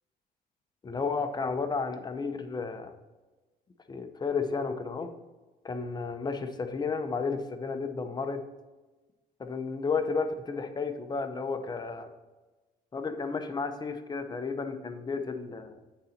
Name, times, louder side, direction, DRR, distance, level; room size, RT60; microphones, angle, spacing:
voice 1, 0.8-2.9 3.9-5.1 5.6-8.5 9.4-12.1 12.9-15.8, left 4 dB, 25° left, 7 dB, 0.7 m, -32 dB
8.7 x 4.0 x 4.3 m, 1.2 s
cardioid pair, 110°, 17 cm